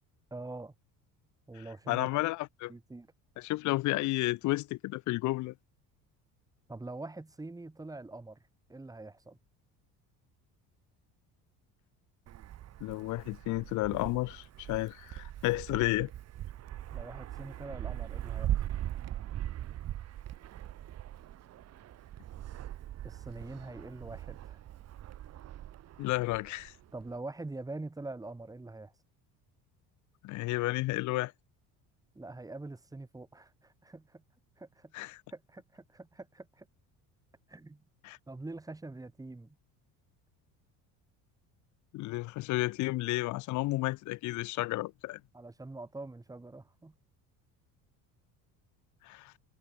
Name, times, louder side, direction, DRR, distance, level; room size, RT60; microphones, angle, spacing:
voice 1, 0.3-0.7 1.5-2.2 2.7-3.1 6.7-8.4 8.7-9.4 16.9-18.6 23.0-24.6 26.9-28.9 32.2-34.2 34.6-34.9 35.3-36.7 37.5-37.8 38.3-39.6 45.3-47.0, right 2 dB, 10° right, 1.6 m, -44 dB
voice 2, 1.9-2.7 3.4-5.5 12.8-16.1 26.0-26.7 30.2-31.3 34.9-35.2 38.0-38.2 41.9-45.2 49.0-49.3, left 19 dB, 55° left, 0.5 m, -32 dB
Wind, 12.3-27.2, right 12 dB, 45° right, 1.0 m, -40 dB
cardioid pair, 110°, 36 cm